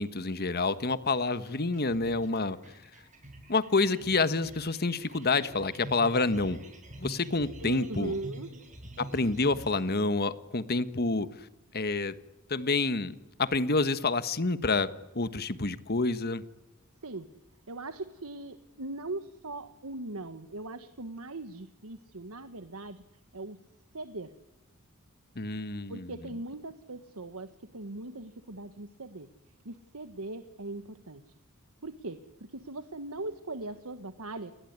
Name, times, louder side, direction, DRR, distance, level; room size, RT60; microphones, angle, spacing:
voice 1, 0.0-2.6 3.5-6.6 7.0-8.1 9.0-11.3 11.7-12.1 12.5-14.9 15.1-16.4 25.3-26.1, left 3 dB, 45° left, 13 dB, 1.4 m, -28 dB
sound 1, 1.0-9.8, right 1 dB, 35° right, 7.5 m, -47 dB
voice 2, 7.6-8.5 17.0-17.3 17.7-23.0 23.3-23.6 23.9-24.3 25.9-29.3 29.6-31.2 31.8-32.2 32.5-34.5, right 2 dB, 75° right, 10 dB, 1.4 m, -40 dB
30.0 x 20.0 x 9.6 m, 0.96 s
head